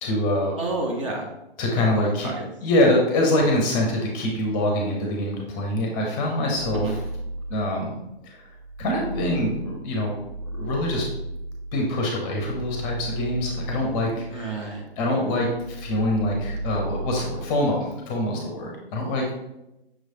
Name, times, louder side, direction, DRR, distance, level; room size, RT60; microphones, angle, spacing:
voice 1, 0.0-0.5 1.6-2.3 2.6-7.0 7.5-8.5 8.8-10.1 10.5-11.0 11.7-19.3, left 1 dB, 20° left, 0 dB, 0.6 m, -25 dB
voice 2, 0.6-1.3 1.7-2.5 6.7-6.9 14.3-14.9, right 3 dB, 30° right, 1 dB, 0.5 m, -30 dB
sound 1, 6.5-8.0 8.4-14.9 15.2-17.5, right 1 dB, 60° right, 0.9 m, -34 dB
5.9 x 3.1 x 2.7 m, 0.93 s
figure-of-eight pair, 130°, 31 cm